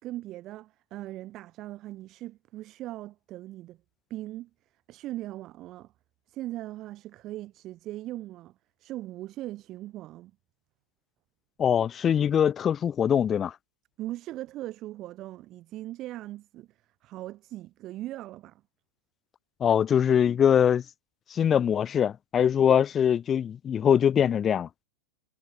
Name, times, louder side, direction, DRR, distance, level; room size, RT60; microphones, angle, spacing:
voice 1, 0.0-3.8 4.1-4.5 4.9-5.9 6.3-10.3 14.0-16.7 17.0-18.6, right 15 dB, 35° right, 5.1 m, -39 dB
voice 2, 11.6-13.5 19.6-20.8 21.3-24.7, left 8 dB, 25° left, 1.0 m, -23 dB
figure-of-eight pair, 90°, 0 cm